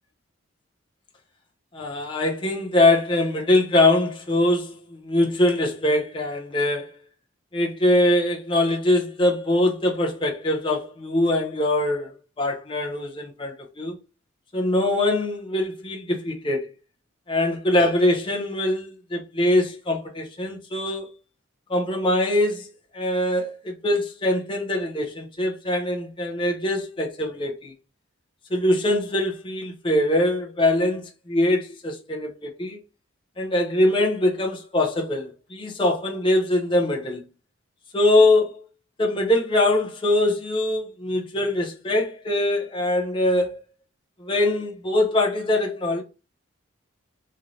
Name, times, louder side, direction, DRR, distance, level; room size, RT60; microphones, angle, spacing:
voice 1, 1.7-4.8 5.0-6.9 7.5-13.9 14.5-16.7 17.3-21.1 21.7-27.7 28.5-32.8 33.4-37.2 37.9-38.5 39.0-43.6 44.2-46.0, left 1 dB, 25° left, 0.5 m, -23 dB
3.1 x 2.6 x 3.7 m
head